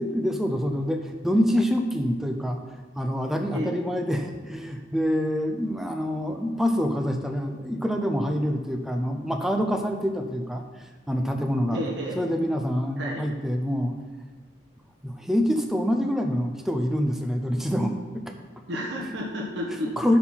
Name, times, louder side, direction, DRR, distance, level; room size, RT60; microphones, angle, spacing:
voice 1, 0.0-2.6 2.9-11.8 12.2-14.0 15.0-18.3 19.7-20.2, equal, ahead, 4 dB, 0.7 m, -26 dB
voice 2, 11.7-12.2 13.0-13.2 18.7-20.1, equal, 60° right, -3 dB, 1.5 m, -31 dB
10.5 x 4.4 x 5.7 m, 1.3 s
head